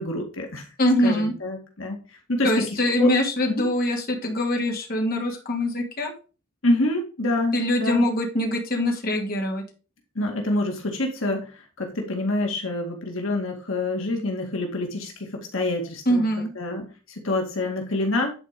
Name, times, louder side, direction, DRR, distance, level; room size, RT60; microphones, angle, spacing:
voice 1, 0.0-0.7 1.0-2.6 3.0-3.1 3.5-3.7 6.6-8.1 10.2-16.3 16.6-18.3, left 2 dB, 75° left, 1 dB, 2.1 m, -27 dB
voice 2, 0.8-1.3 2.4-6.1 7.5-9.6 16.1-16.5, left 1 dB, 45° left, 1 dB, 2.5 m, -23 dB
10.5 x 4.6 x 5.2 m, 0.34 s
head